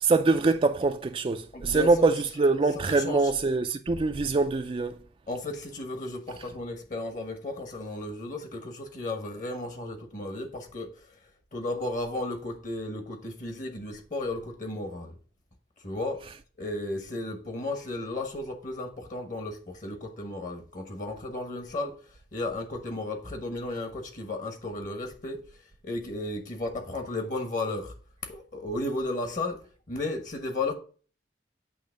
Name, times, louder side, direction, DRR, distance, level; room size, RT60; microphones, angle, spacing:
voice 1, 0.0-5.0, right 3 dB, 30° right, 0.4 m, -24 dB
voice 2, 1.5-1.9 2.9-3.3 5.3-11.1 11.5-15.1 15.8-16.2 16.6-21.9 22.3-25.4 25.8-27.9 28.2-29.6 29.9-30.7, left 2 dB, 45° left, 1.2 m, -34 dB
8.5 x 3.0 x 6.3 m
head